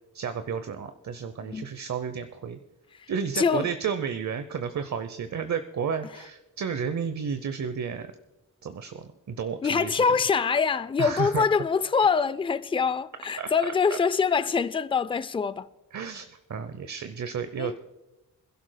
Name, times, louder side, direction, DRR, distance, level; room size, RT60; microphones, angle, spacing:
voice 1, 0.1-2.6 3.1-8.1 8.6-10.0 11.0-11.4 13.4-14.0 15.9-17.8, right 6 dB, 50° right, 0.7 m, -32 dB
voice 2, 3.4-3.7 9.6-15.7 17.6-17.8, left 5 dB, 15° left, 0.3 m, -24 dB
26.5 x 11.5 x 2.2 m
wide cardioid pair, 100°, 37 cm